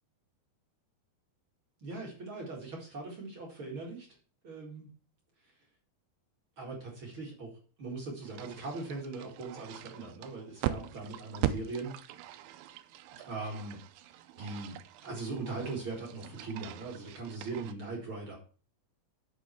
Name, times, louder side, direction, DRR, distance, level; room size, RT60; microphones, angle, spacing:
voice 1, 1.8-4.1 4.4-4.9 5.4-5.5 6.6-12.0 13.2-13.8 14.0-14.8 15.0-18.4, right 3 dB, 40° right, -2 dB, 2.0 m, -40 dB
sound 1, 8.2-17.7, right 12 dB, 80° right, 2.6 m, -40 dB
8.5 x 6.1 x 4.5 m, 0.40 s
omnidirectional pair, 4.8 m